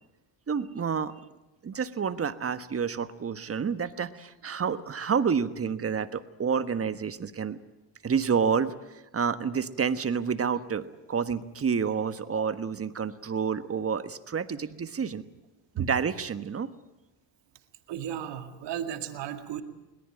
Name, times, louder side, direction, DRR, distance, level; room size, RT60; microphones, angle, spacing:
voice 1, 0.5-1.1 1.6-7.6 8.0-8.7 9.1-15.2 15.7-16.7, right 6 dB, 30° right, 12 dB, 1.4 m, -29 dB
voice 2, 17.9-19.6, right 10 dB, 75° right, 7 dB, 2.2 m, -34 dB
22.0 x 19.0 x 9.1 m, 0.99 s
cardioid pair, 90°, 43 cm